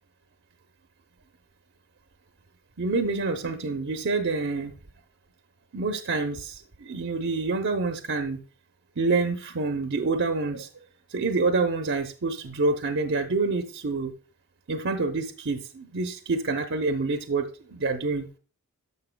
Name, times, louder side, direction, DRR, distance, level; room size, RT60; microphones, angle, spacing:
voice 1, 2.8-4.7 5.7-8.4 9.0-10.7 11.1-14.1 14.7-18.3, right 3 dB, 55° right, 6 dB, 0.7 m, -27 dB
12.0 x 6.7 x 2.2 m, 0.36 s
head